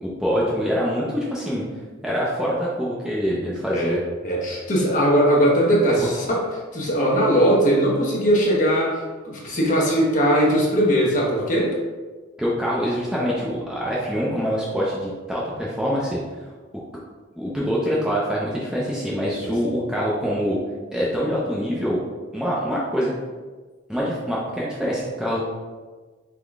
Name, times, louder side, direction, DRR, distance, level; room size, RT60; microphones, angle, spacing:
voice 1, 0.0-1.6 2.0-4.0 12.4-16.2 17.4-20.6 20.9-22.0 22.3-23.1 23.9-25.4, equal, 5° right, -6 dB, 0.5 m, -25 dB
voice 2, 4.2-6.4 6.7-11.7 19.4-19.5, equal, 40° left, -3 dB, 0.9 m, -20 dB
3.7 x 3.6 x 3.5 m, 1.4 s
head